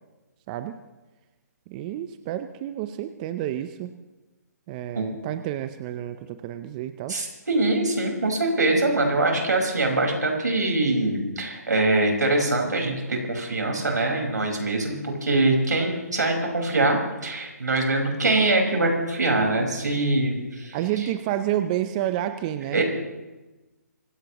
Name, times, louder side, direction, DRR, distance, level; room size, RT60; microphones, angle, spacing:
voice 1, 1.7-3.9 4.7-7.2 20.7-22.8, right 12 dB, 25° right, 9 dB, 0.7 m, -29 dB
voice 2, 7.1-20.8 22.7-22.8, right 2 dB, 85° right, 1 dB, 5.1 m, -23 dB
25.0 x 17.0 x 3.1 m, 1.1 s
hypercardioid pair, 150°, 9 cm